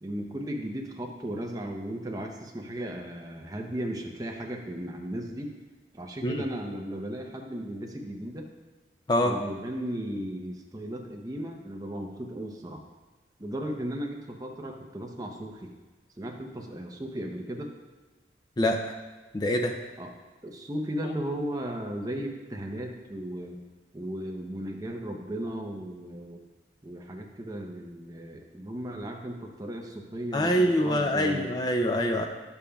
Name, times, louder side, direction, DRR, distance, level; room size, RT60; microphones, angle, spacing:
voice 1, 0.0-5.6 5.9-8.5 9.2-12.8 13.4-15.7 16.2-17.8 20.0-20.1 20.4-23.6 23.9-26.4 26.8-31.5, right 1 dB, 20° right, 2 dB, 0.7 m, -36 dB
voice 2, 19.3-19.7 30.3-32.3, equal, 25° left, 3 dB, 0.4 m, -25 dB
11.0 x 6.9 x 2.3 m, 1.3 s
head